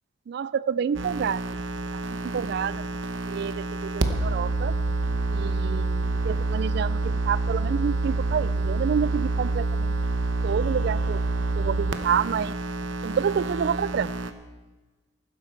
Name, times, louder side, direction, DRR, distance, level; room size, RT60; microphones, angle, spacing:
voice 1, 0.3-1.4 2.1-2.8 3.3-4.7 5.3-9.9 10.4-11.2 11.6-12.6 13.0-14.1, right 7 dB, 60° right, 19 dB, 0.3 m, -28 dB
sound 1, 0.9-14.3, right 2 dB, 90° right, 0.9 m, -27 dB
15.5 x 12.0 x 4.6 m, 1.2 s
head